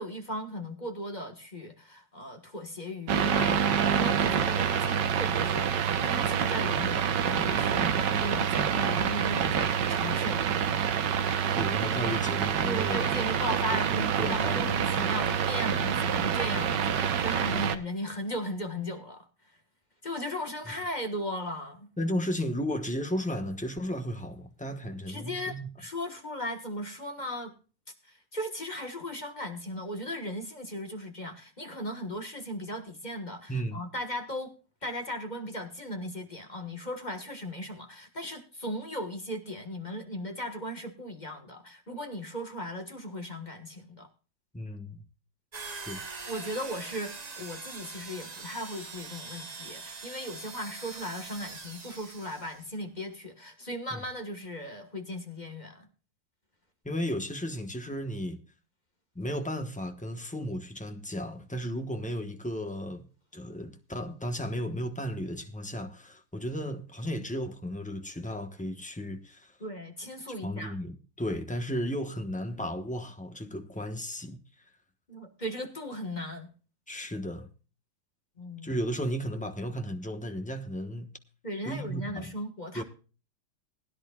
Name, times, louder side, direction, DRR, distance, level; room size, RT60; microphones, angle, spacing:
voice 1, 0.0-10.4 12.6-19.3 20.0-21.9 25.1-25.5 25.8-27.5 28.1-34.5 34.8-44.1 46.3-55.9 69.6-70.7 75.1-76.5 78.4-78.7 81.4-82.8, equal, 25° left, 1.4 m, -37 dB
sound 1, 3.1-17.8, right 8 dB, 65° right, 1.5 m, -27 dB
voice 2, 11.5-13.0 14.0-15.0 17.5-17.6 22.0-25.7 33.5-33.8 44.5-45.0 45.7-46.0 53.9-54.0 56.8-58.4 59.1-63.1 63.3-69.5 70.4-74.4 76.9-77.5 78.6-81.1 81.6-82.3 82.7-82.8, equal, 10° left, 0.5 m, -34 dB
sound 2, 45.5-52.7, right 4 dB, 45° right, 0.5 m, -43 dB
20.5 x 11.0 x 2.3 m
omnidirectional pair, 2.3 m